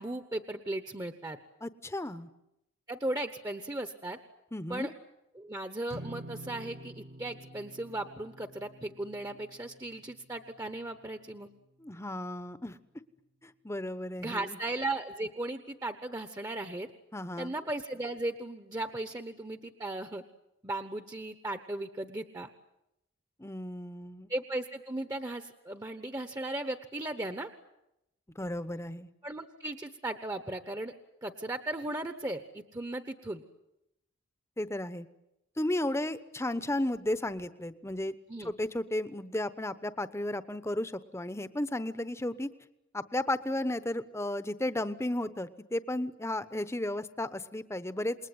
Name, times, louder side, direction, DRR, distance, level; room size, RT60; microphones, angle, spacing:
voice 1, 0.0-1.4 2.9-4.2 4.7-4.9 5.3-11.5 14.2-16.9 17.4-20.2 20.6-22.5 24.3-27.5 29.2-30.9 31.2-33.4 38.3-38.5, right 2 dB, 20° right, 8 dB, 1.1 m, -36 dB
voice 2, 1.6-2.3 4.5-4.9 11.8-12.8 13.4-14.6 17.1-17.5 23.4-24.3 28.4-29.1 34.6-35.1 35.6-38.1 38.4-42.5 42.9-48.2, left 1 dB, 15° left, 13 dB, 1.0 m, -34 dB
sound 1, 5.9-12.3, right 1 dB, 50° right, 1.3 m, -49 dB
28.0 x 21.0 x 9.6 m, 0.87 s
head